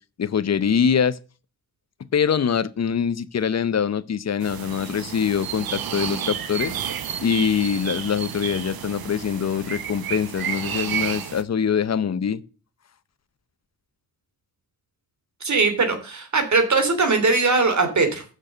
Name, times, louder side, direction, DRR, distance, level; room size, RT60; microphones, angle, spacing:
voice 1, 0.2-1.2 2.1-6.7 7.2-12.4, left 7 dB, 50° left, 0.8 m, -23 dB
sound 1, 4.4-11.4, right 9 dB, 85° right, 0.9 m, -31 dB
voice 2, 15.4-18.2, right 3 dB, 55° right, 2.9 m, -20 dB
6.8 x 6.5 x 7.2 m
cardioid pair, 85°, 35 cm